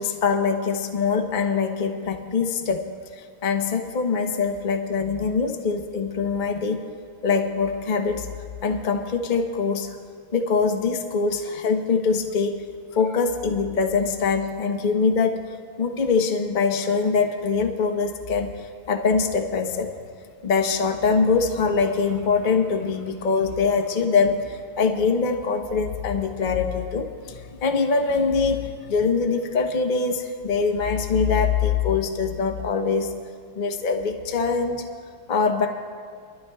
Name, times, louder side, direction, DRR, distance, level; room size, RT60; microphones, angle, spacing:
voice 1, 0.0-2.9 3.2-6.8 7.2-8.3 8.6-10.0 10.3-12.6 12.9-15.4 15.8-18.5 18.9-19.9 20.4-33.1 33.6-34.8 35.3-35.7, left 5 dB, 90° left, 4 dB, 0.4 m, -23 dB
26.0 x 12.5 x 2.3 m, 2.1 s
omnidirectional pair, 2.4 m